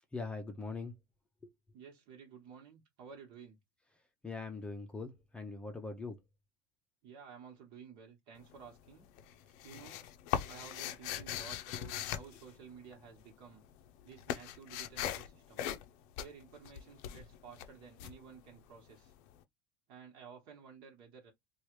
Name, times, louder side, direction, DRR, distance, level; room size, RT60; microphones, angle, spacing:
voice 1, 0.1-0.9 1.4-1.5 4.2-6.2, left 3 dB, 10° left, 0.6 m, -42 dB
voice 2, 1.7-3.6 7.0-9.1 9.6-10.1 10.5-13.6 14.0-15.7 16.2-19.1 19.9-21.3, right 6 dB, 60° right, 1.2 m, -53 dB
sound 1, 8.4-8.9 9.2-13.2 13.5-19.1, left 11 dB, 65° left, 0.5 m, -40 dB
3.1 x 2.4 x 3.1 m
supercardioid pair, 120°, 10 cm